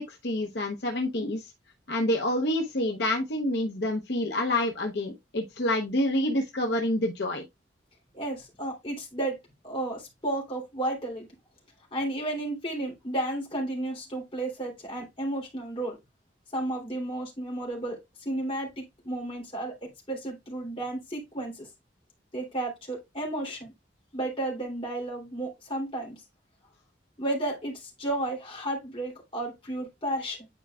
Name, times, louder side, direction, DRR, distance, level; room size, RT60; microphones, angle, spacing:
voice 1, 0.0-1.5 1.9-7.4, left 1 dB, 60° left, 0.8 m, -28 dB
voice 2, 8.1-9.4 9.6-11.3 11.9-16.0 16.5-21.7 22.3-23.7 24.1-26.1 27.2-30.5, right 1 dB, 30° left, 2.9 m, -33 dB
9.8 x 4.6 x 2.4 m
head